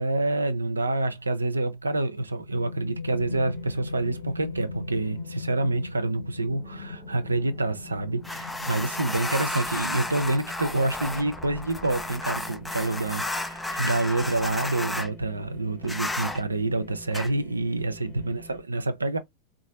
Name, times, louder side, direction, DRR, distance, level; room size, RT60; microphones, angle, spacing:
voice 1, 0.0-19.2, right 2 dB, 80° right, 0.5 m, -27 dB
sound 1, 2.3-13.6, left 3 dB, 80° left, 0.3 m, -40 dB
sound 2, 3.1-18.6, equal, 25° left, 0.9 m, -48 dB
Fingernails on siding, 8.2-15.1 15.8-16.4 17.1-17.3, left 2 dB, 5° left, 0.4 m, -32 dB
3.9 x 2.4 x 2.7 m
figure-of-eight pair, 90°, 0 cm